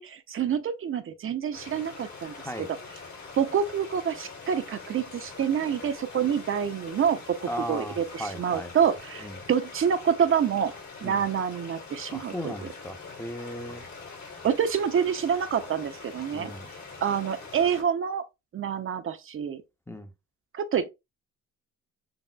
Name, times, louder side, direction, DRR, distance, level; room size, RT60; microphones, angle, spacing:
voice 1, 0.0-2.7 3.4-10.7 11.0-12.7 14.4-16.5 17.0-18.3 18.5-19.6 20.5-20.9, right 8 dB, 45° right, 0.5 m, -27 dB
sound 1, 1.5-17.8, left 4 dB, 70° left, 2.0 m, -44 dB
voice 2, 2.4-2.7 7.5-9.0 9.2-9.4 11.0-11.2 12.1-13.9 16.3-16.7 19.9-20.1, equal, 10° left, 0.6 m, -37 dB
4.1 x 3.4 x 2.2 m
cardioid pair, 90°, 30 cm